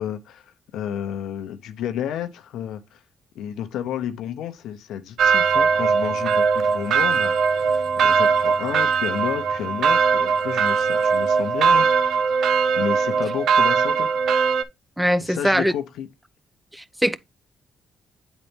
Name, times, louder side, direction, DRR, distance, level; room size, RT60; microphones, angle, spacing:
voice 1, 0.0-3.0 3.3-7.7 8.0-12.2 12.8-14.1 15.2-16.1, left 9 dB, 80° left, 0.7 m, -31 dB
sound 1, 5.2-14.6, right 5 dB, 70° right, 0.6 m, -20 dB
voice 2, 15.0-15.7 16.7-17.2, equal, 10° right, 0.6 m, -21 dB
8.9 x 4.1 x 3.5 m
supercardioid pair, 70°, 0 cm